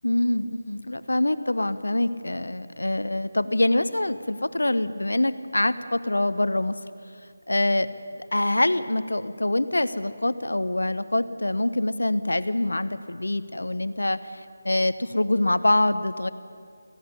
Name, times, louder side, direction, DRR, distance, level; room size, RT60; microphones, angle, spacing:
voice 1, 0.0-6.8 7.5-7.9 8.3-14.2 14.6-16.3, left 1 dB, 85° left, 13 dB, 1.1 m, -24 dB
18.0 x 16.0 x 10.0 m, 2.2 s
figure-of-eight pair, 160°, 0 cm